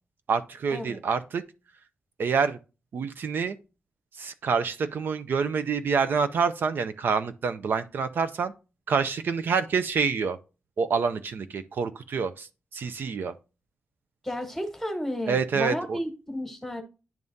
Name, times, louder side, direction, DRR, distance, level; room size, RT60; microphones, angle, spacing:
voice 1, 0.3-1.4 2.2-2.6 2.9-3.6 4.1-8.5 8.9-10.4 10.8-12.5 12.7-13.3 15.3-16.0, right 5 dB, 55° right, 0.5 m, -27 dB
voice 2, 14.2-16.8, equal, 5° left, 1.3 m, -32 dB
10.5 x 3.6 x 2.6 m
wide cardioid pair, 170°, 4 cm